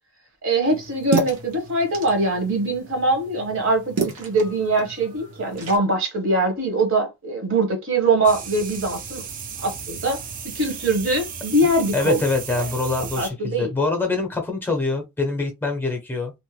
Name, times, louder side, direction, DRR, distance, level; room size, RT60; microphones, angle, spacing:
voice 1, 0.4-9.3 9.6-10.2 10.4-12.2 13.2-13.7, right 2 dB, 60° right, 1.1 m, -22 dB
sound 1, 0.6-5.8, right 4 dB, 75° right, 1.0 m, -31 dB
sound 2, 8.2-13.3, right 6 dB, 35° right, 0.4 m, -35 dB
voice 2, 11.9-16.3, left 3 dB, 10° left, 0.6 m, -24 dB
2.7 x 2.1 x 3.1 m
head